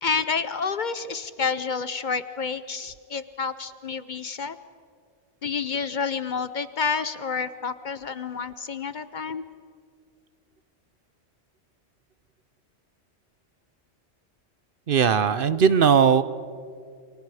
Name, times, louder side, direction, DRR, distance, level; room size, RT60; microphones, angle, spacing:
voice 1, 0.0-4.6 5.4-9.4, left 5 dB, 50° left, 13 dB, 0.8 m, -29 dB
voice 2, 14.9-16.2, right 7 dB, 60° right, 14 dB, 0.8 m, -18 dB
29.0 x 25.5 x 4.9 m, 2.2 s
omnidirectional pair, 1.1 m